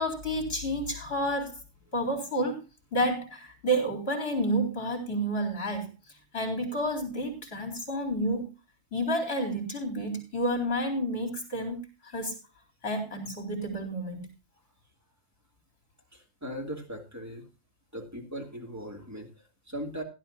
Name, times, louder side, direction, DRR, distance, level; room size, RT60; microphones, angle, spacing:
voice 1, 0.0-1.6 1.9-2.6 2.9-5.9 6.3-8.5 8.9-12.4 12.8-14.3, equal, 60° left, 4 dB, 4.2 m, -30 dB
voice 2, 16.1-17.5 17.9-20.0, equal, 15° right, 1 dB, 2.8 m, -39 dB
16.5 x 11.5 x 2.8 m, 0.28 s
omnidirectional pair, 1.2 m